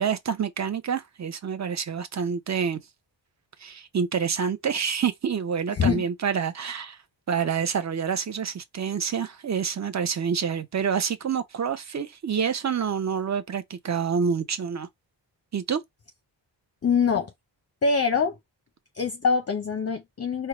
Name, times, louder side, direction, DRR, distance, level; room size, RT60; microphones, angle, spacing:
voice 1, 0.0-2.8 3.6-7.0 7.3-14.9 15.5-15.8, right 7 dB, 35° right, 0.7 m, -27 dB
voice 2, 16.8-17.3 17.8-18.4 18.9-20.5, left 5 dB, 35° left, 0.6 m, -24 dB
4.6 x 2.3 x 2.9 m
wide cardioid pair, 115°, 46 cm